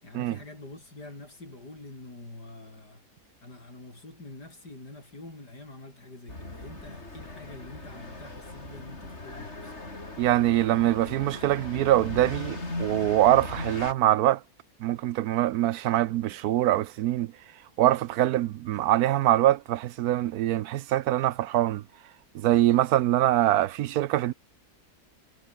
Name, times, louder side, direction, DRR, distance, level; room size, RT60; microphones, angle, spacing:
voice 1, 0.0-3.0 3.4-9.7, left 2 dB, 90° left, 7.7 m, -46 dB
sound 1, 6.3-13.9, left 2 dB, 40° left, 4.7 m, -38 dB
voice 2, 10.2-14.4 14.8-17.3 17.8-21.8 22.3-24.3, right 14 dB, 75° right, 1.1 m, -24 dB
omnidirectional pair, 1.7 m